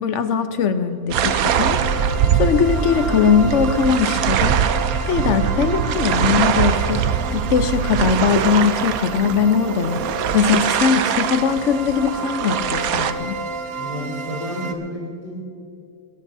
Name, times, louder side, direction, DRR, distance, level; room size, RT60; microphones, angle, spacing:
voice 1, 0.0-1.8 2.4-4.6 5.0-7.0 7.3-10.0 10.3-13.4, left 6 dB, 60° left, 9 dB, 0.7 m, -20 dB
sound 1, 1.1-14.7, right 2 dB, 55° right, 1.4 m, -32 dB
sound 2, 1.1-13.1, right 8 dB, 70° right, 0.8 m, -22 dB
voice 2, 13.8-15.4, left 1 dB, 25° left, -6 dB, 3.0 m, -31 dB
26.0 x 14.5 x 2.7 m, 2.4 s
omnidirectional pair, 2.1 m